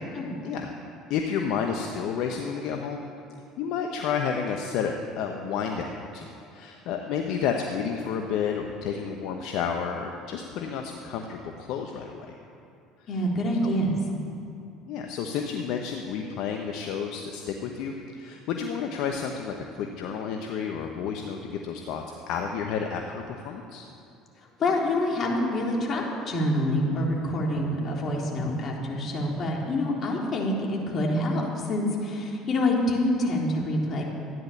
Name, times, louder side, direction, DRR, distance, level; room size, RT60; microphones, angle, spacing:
voice 1, 1.1-3.0 3.6-12.3 13.6-13.7 14.9-23.8, left 6 dB, 65° left, 3 dB, 1.1 m, -31 dB
voice 2, 13.1-13.9 24.6-34.0, left 1 dB, 45° left, -2 dB, 3.5 m, -26 dB
14.0 x 10.5 x 7.3 m, 2.6 s
hypercardioid pair, 70°, 0 cm